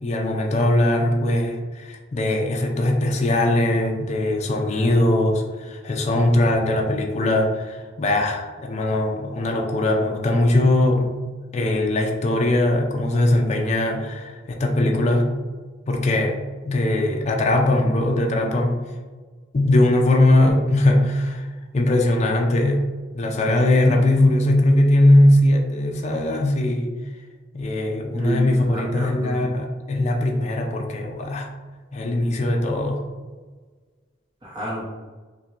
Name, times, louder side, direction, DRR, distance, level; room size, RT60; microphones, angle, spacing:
voice 1, 0.0-11.1 11.5-15.3 15.9-16.4 16.6-18.8 19.5-21.5 21.7-26.9 27.5-31.5 31.9-33.0, left 1 dB, 35° left, 1 dB, 0.4 m, -20 dB
voice 2, 28.1-29.5 34.4-34.8, right 1 dB, 25° right, -7 dB, 0.8 m, -29 dB
5.7 x 2.2 x 2.5 m, 1.4 s
head